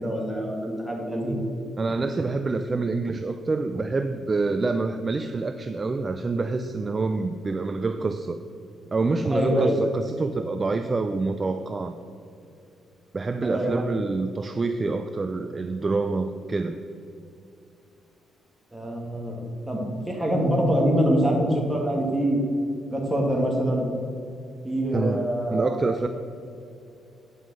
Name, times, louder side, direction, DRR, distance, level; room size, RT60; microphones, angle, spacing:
voice 1, 0.0-1.4 9.3-9.8 13.4-13.7 18.7-22.4 22.9-23.9 24.6-25.9, equal, 5° right, -1 dB, 2.3 m, -25 dB
voice 2, 1.8-8.4 8.9-11.9 13.1-16.8 24.9-25.2 25.5-26.1, right 3 dB, 30° right, 8 dB, 0.4 m, -26 dB
9.4 x 5.5 x 6.3 m, 2.6 s
cardioid pair, 90°, 0 cm